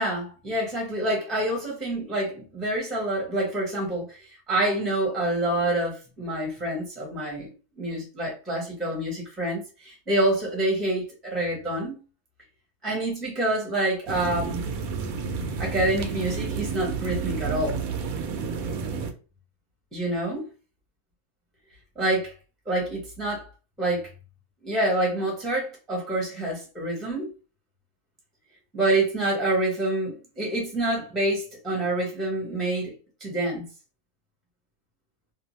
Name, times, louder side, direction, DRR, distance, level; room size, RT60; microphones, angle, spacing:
voice 1, 0.0-7.5 7.8-12.0 12.8-14.7 15.6-17.8 19.9-20.5 22.0-22.3 22.7-23.5 23.8-24.1 24.6-27.3 28.7-32.9 33.2-33.7, right 1 dB, ahead, 0.7 m, -27 dB
sound 1, 14.1-19.1, right 5 dB, 75° right, 1.0 m, -30 dB
2.6 x 2.3 x 3.0 m
omnidirectional pair, 1.6 m